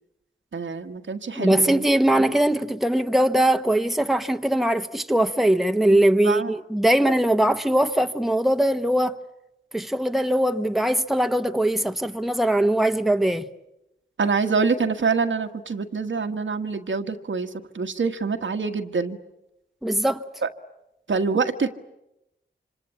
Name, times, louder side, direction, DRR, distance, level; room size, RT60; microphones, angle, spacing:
voice 1, 0.5-1.8 6.2-6.5 14.2-19.2 20.4-20.5 21.1-21.7, right 4 dB, 85° right, 1.6 m, -25 dB
voice 2, 1.3-9.2 9.7-13.5 19.8-20.2, right 1 dB, ahead, 1.2 m, -21 dB
26.5 x 26.0 x 8.6 m
cardioid pair, 55°, 19 cm